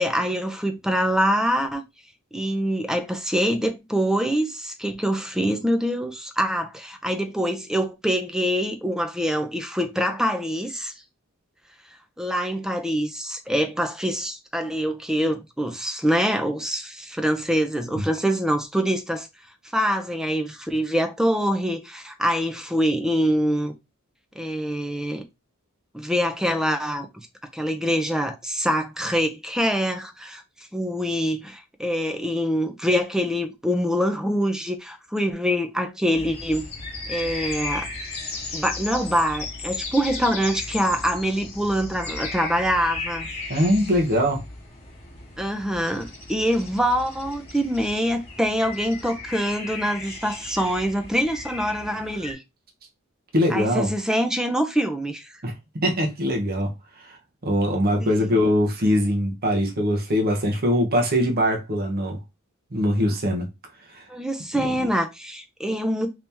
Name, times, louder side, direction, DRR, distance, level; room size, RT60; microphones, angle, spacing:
voice 1, 0.0-1.8 2.3-10.9 12.2-19.3 19.7-23.7 24.4-25.2 25.9-27.3 27.5-30.4 30.7-36.7 37.1-37.9 38.5-43.3 45.4-52.4 53.5-55.4 58.0-58.4 64.1-66.1, equal, 5° right, 0.5 m, -25 dB
sound 1, 36.1-52.3, left 3 dB, 30° left, 1.3 m, -35 dB
voice 2, 43.5-44.4 53.3-53.9 55.4-55.5 55.8-56.7 57.0-57.2 57.4-62.2 62.7-63.5 63.9-64.0 64.5-64.9, equal, 45° right, 0.9 m, -22 dB
2.9 x 2.8 x 3.4 m
head